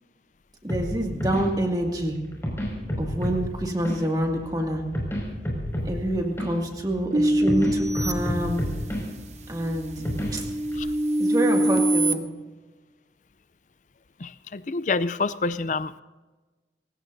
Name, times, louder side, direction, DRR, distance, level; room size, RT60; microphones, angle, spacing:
voice 1, 0.6-2.2 3.0-4.8 5.8-8.6 9.5-10.0 10.3-10.5 11.2-12.3, right 1 dB, 20° right, 1 dB, 2.2 m, -27 dB
sound 1, 0.7-10.8, equal, 15° left, 5.7 m, -32 dB
sound 2, 7.1-9.1 9.6-12.1, right 1 dB, 40° right, 0.8 m, -24 dB
voice 2, 14.2-16.0, left 3 dB, 45° left, 14 dB, 0.5 m, -27 dB
29.0 x 16.0 x 2.7 m, 1.2 s
head